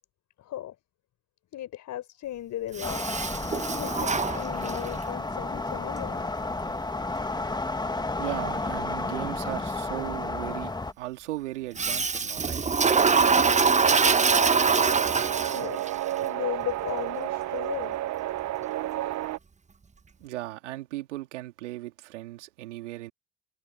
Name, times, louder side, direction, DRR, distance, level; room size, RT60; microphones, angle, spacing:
voice 1, 0.4-0.7 1.5-3.0 3.7-6.3 15.5-18.0, left 12 dB, 55° left, 5.0 m, -36 dB
Toilet flush, 2.7-5.0 11.8-15.9, right 5 dB, 20° right, 1.3 m, -24 dB
sound 1, 2.8-10.9, left 2 dB, 10° left, 2.2 m, -32 dB
voice 2, 8.2-12.6 20.2-23.1, right 16 dB, 85° right, 2.8 m, -37 dB
sound 2, 12.8-19.4, right 14 dB, 50° right, 1.1 m, -31 dB
hypercardioid pair, 65°, 35 cm